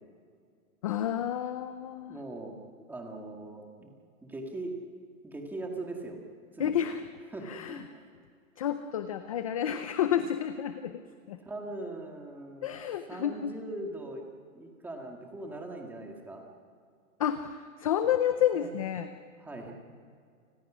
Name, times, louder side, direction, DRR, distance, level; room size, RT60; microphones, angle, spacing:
voice 1, 0.8-2.2 6.6-7.1 7.4-7.9 8.6-11.4 12.6-13.6 17.2-19.1, left 10 dB, 25° left, 9 dB, 0.5 m, -30 dB
voice 2, 2.1-2.6 2.9-3.9 4.2-4.7 5.2-6.2 6.5-6.8 7.3-8.1 11.4-12.8 13.1-14.2 14.5-16.4 18.5-18.7 19.4-19.7, right 2 dB, 5° right, 1 dB, 1.9 m, -40 dB
29.5 x 20.5 x 6.2 m, 2.2 s
hypercardioid pair, 170°, 43 cm